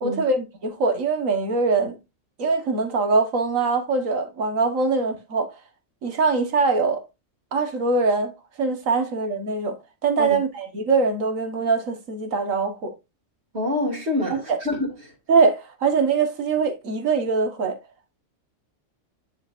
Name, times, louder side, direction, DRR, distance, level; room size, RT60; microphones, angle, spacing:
voice 1, 0.0-2.0 2.4-5.5 6.0-7.0 7.5-8.3 8.6-9.8 10.0-12.9 14.3-14.6 15.3-17.8, right 4 dB, 75° right, 1.8 m, -22 dB
voice 2, 13.5-14.8 15.0-15.1, left 2 dB, 50° right, 2.8 m, -26 dB
10.0 x 5.3 x 2.6 m
omnidirectional pair, 1.4 m